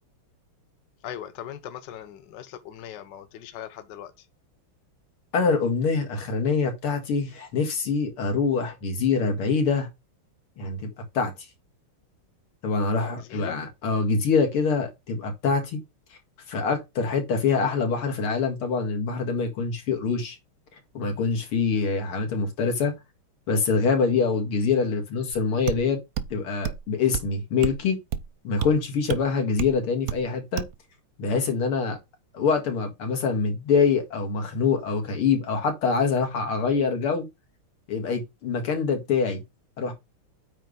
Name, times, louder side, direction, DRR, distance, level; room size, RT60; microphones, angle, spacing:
voice 1, 1.0-4.2 13.2-13.6, left 10 dB, 60° left, 1.5 m, -39 dB
voice 2, 5.3-9.9 10.6-11.3 12.6-15.8 16.5-20.4 20.9-23.0 23.5-26.0 26.3-28.0 28.4-30.6 31.2-32.0 32.3-37.3 37.9-39.4 39.8-39.9, left 5 dB, 80° left, 2.8 m, -25 dB
sound 1, 25.3-25.4 25.7-25.8 26.2-26.3 26.6-26.8 27.1-27.3 27.6-27.8 28.1-28.3 28.6-28.7 29.1-29.2 29.6-29.8 30.1-30.2 30.6-30.7, right 9 dB, 65° right, 0.9 m, -29 dB
9.0 x 3.2 x 5.3 m
omnidirectional pair, 2.4 m